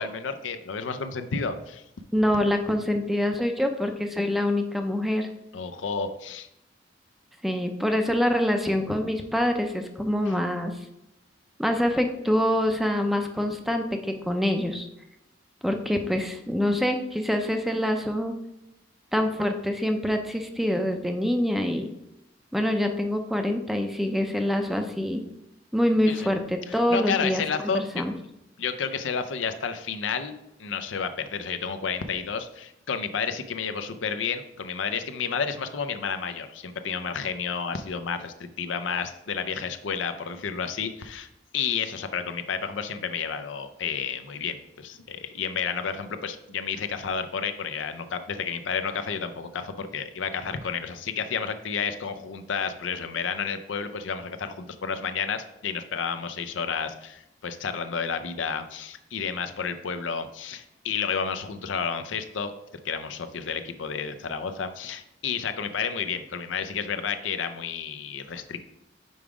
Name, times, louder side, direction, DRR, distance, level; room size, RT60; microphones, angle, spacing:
voice 1, 0.0-1.8 5.5-6.5 10.3-10.4 26.1-26.3 26.7-28.0 28.6-30.3 30.6-41.3 41.5-62.5 62.8-68.6, left 6 dB, 80° left, 10 dB, 0.5 m, -31 dB
voice 2, 2.1-5.3 7.4-10.8 11.6-14.9 15.6-18.3 19.1-21.9 22.5-25.2 25.7-27.4 27.7-28.1, left 1 dB, ahead, 5 dB, 0.5 m, -25 dB
5.4 x 4.8 x 4.9 m, 0.86 s
head